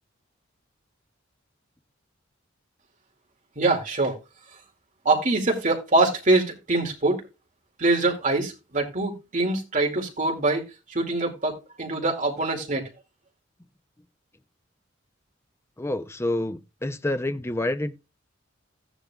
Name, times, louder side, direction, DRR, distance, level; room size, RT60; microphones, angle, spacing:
voice 1, 3.6-4.2 5.0-7.2 7.8-10.6 10.9-12.9, right 2 dB, 40° right, 2.4 m, -24 dB
voice 2, 15.8-18.0, left 1 dB, 15° left, 0.6 m, -28 dB
14.5 x 10.0 x 2.4 m
head